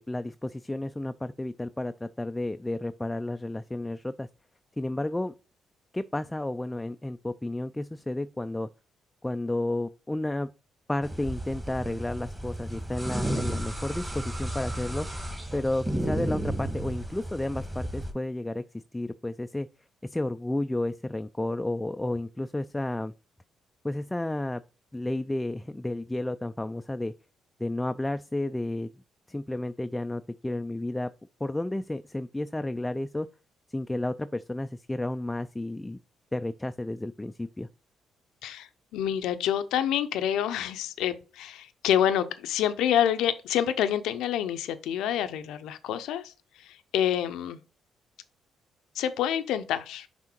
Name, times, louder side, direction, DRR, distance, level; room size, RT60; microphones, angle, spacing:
voice 1, 0.0-4.3 4.8-5.3 5.9-8.7 9.2-10.5 10.9-15.1 15.5-18.6 18.9-19.7 20.0-23.1 23.8-24.6 24.9-27.1 27.6-28.9 29.3-31.1 31.4-33.3 33.7-36.0 36.3-37.7, left 1 dB, 10° left, 0.3 m, -32 dB
sound 1, 11.0-18.1, right 1 dB, 10° right, 1.5 m, -33 dB
voice 2, 38.4-46.3 46.6-47.6 48.9-50.1, left 10 dB, 90° left, 0.6 m, -27 dB
6.2 x 3.6 x 4.4 m
cardioid pair, 90°, 0 cm